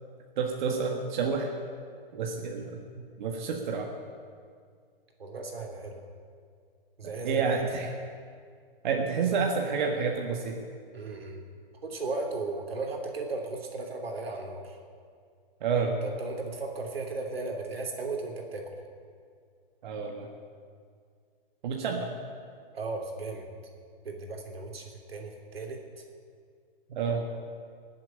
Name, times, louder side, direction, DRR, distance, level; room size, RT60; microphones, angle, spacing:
voice 1, 0.4-1.5 2.1-3.9 7.2-7.9 8.8-10.5 15.6-15.9 19.8-20.3 21.6-22.1 26.9-27.2, right 5 dB, 50° right, 1 dB, 1.7 m, -29 dB
voice 2, 5.2-6.0 7.0-7.6 10.9-11.4 11.8-14.8 15.8-18.7 22.7-23.5 24.0-25.8, right 3 dB, 85° right, 2 dB, 3.1 m, -36 dB
20.5 x 7.7 x 8.9 m, 2.1 s
hypercardioid pair, 145°, 29 cm